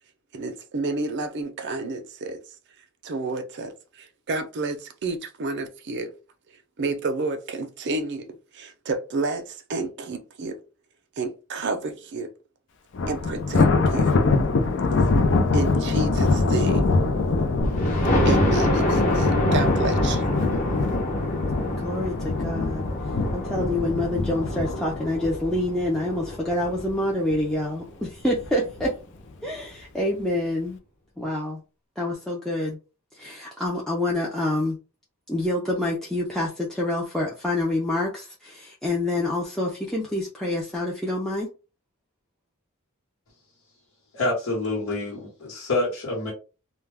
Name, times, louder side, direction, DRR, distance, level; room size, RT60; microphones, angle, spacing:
voice 1, 0.3-2.4 3.0-3.7 4.0-6.1 6.8-8.3 8.5-10.6 11.2-12.3 13.1-14.1 15.5-16.9 18.2-20.3, right 3 dB, 55° right, 0.5 m, -30 dB
Thunder, 12.9-26.2 26.6-26.9 27.3-27.4 28.3-28.9, left 3 dB, 60° left, 0.5 m, -24 dB
Thunder 2, 17.6-27.3 27.9-28.0 28.4-28.5 28.8-28.9, left 1 dB, 40° left, 0.9 m, -26 dB
voice 2, 21.8-22.8 23.3-28.9 29.4-30.8 31.2-31.6 32.0-32.8 33.1-34.8 35.3-41.5, left 1 dB, 5° left, 0.4 m, -27 dB
voice 3, 44.1-46.3, left 2 dB, 85° left, 1.1 m, -27 dB
2.2 x 2.2 x 3.3 m
head